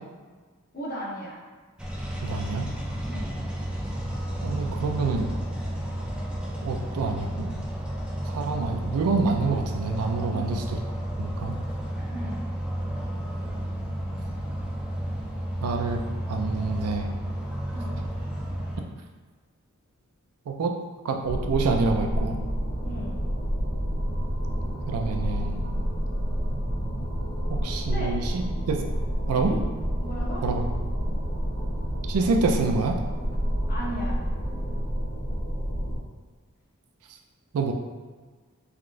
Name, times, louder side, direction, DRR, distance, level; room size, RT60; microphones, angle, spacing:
voice 1, 0.7-1.4 3.1-3.3 10.3-10.7 12.1-12.4 17.7-18.0 22.8-23.2 27.8-28.1 29.5-29.6 30.0-30.5 33.7-34.2, equal, 45° left, -5 dB, 0.7 m, -36 dB
sound 1, 1.8-18.8, right 1 dB, 5° right, 0.3 m, -32 dB
voice 2, 2.2-2.7 4.4-5.3 6.6-7.5 8.3-10.8 11.2-11.6 15.6-16.0 16.3-17.1 20.5-20.8 21.0-22.4 24.9-25.7 27.5-28.8 29.3-29.5 30.4-30.6 32.1-33.0 37.5-37.7, right 4 dB, 80° right, 3 dB, 0.4 m, -27 dB
sound 2, 21.2-36.0, equal, 15° left, 0.9 m, -29 dB
3.5 x 2.3 x 2.5 m, 1.4 s
head